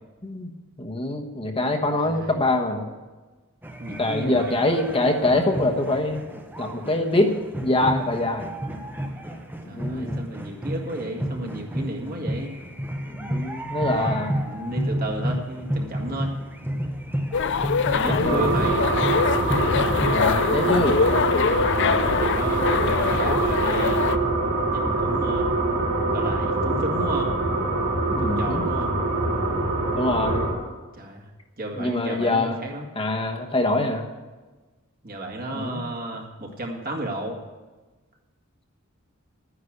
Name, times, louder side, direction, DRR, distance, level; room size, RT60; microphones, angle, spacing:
voice 1, 0.8-2.9 4.0-6.2 6.6-7.3 7.6-8.5 9.6-10.3 13.1-14.3 18.0-18.5 20.1-20.9 28.0-28.6 29.9-30.5 31.8-32.6 32.9-34.0 35.5-35.9, left 2 dB, 25° left, 3 dB, 1.2 m, -24 dB
voice 2, 1.6-2.4 3.8-4.8 5.7-5.8 9.7-12.6 13.9-14.1 14.4-16.3 17.9-18.7 21.7-24.1 24.7-25.5 26.1-27.3 28.2-28.9 30.9-31.3 31.6-32.9 35.0-37.4, right 1 dB, 45° right, 1 dB, 2.0 m, -33 dB
sound 1, 3.6-20.4, equal, 10° right, 0.9 m, -31 dB
sound 2, 17.3-24.2, left 6 dB, 60° left, 0.5 m, -24 dB
sound 3, 18.2-30.5, right 2 dB, 80° right, 4.0 m, -24 dB
11.5 x 9.8 x 6.6 m, 1.3 s
head